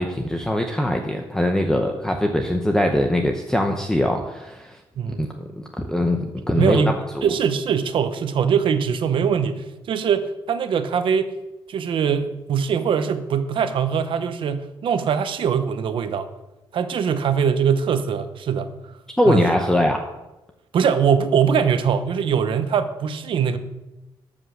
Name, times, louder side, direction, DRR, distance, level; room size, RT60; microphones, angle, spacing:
voice 1, 0.0-4.8 5.2-5.3 5.6-6.8 7.1-7.3 19.2-20.0, left 1 dB, 5° left, 3 dB, 0.8 m, -22 dB
voice 2, 5.0-5.3 6.5-11.3 11.7-16.3 16.7-18.7 19.3-19.5 20.7-23.6, right 7 dB, 70° right, 10 dB, 1.0 m, -22 dB
13.0 x 5.6 x 6.5 m, 1.0 s
cardioid pair, 130°, 9 cm